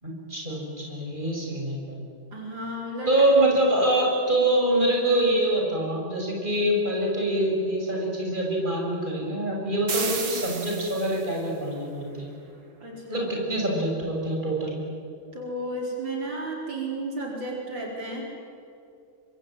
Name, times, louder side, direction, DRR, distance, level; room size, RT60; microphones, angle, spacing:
voice 1, 0.0-2.0 3.1-12.3 13.1-14.8, right 1 dB, 25° right, -1 dB, 6.7 m, -25 dB
voice 2, 2.3-3.1 12.8-13.3 15.3-18.3, right 1 dB, 70° right, -1 dB, 5.3 m, -33 dB
sound 1, 9.9-11.4, right 5 dB, 55° right, 2.6 m, -32 dB
25.0 x 25.0 x 9.1 m, 2.5 s
omnidirectional pair, 2.1 m